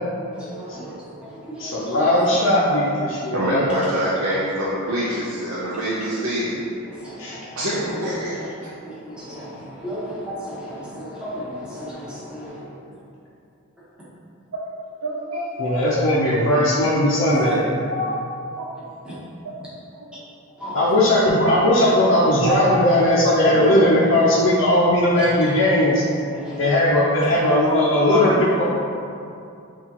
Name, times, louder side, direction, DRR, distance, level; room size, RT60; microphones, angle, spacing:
voice 1, 0.3-0.9 1.3-2.1 6.9-7.4 8.8-12.6 19.0-19.1 20.6-20.7 25.2-25.3 26.3-26.7, equal, 5° right, -9 dB, 0.7 m, -35 dB
voice 2, 1.6-3.7 7.2-7.4 15.6-17.6 20.7-26.0 26.6-28.3 28.6-28.7, left 1 dB, 65° left, -7 dB, 0.5 m, -18 dB
voice 3, 3.3-6.7 7.6-8.5 12.8-12.9 14.5-14.6 15.0-16.0 16.7-16.8 17.3-17.6 17.9-18.2 18.6-18.7 19.4-19.6 19.9-20.1 20.6-20.8 21.5-21.9 22.4-22.9 23.5-23.8 27.5-28.5, equal, 90° right, -7 dB, 0.5 m, -26 dB
5.8 x 2.3 x 2.8 m, 2.6 s
head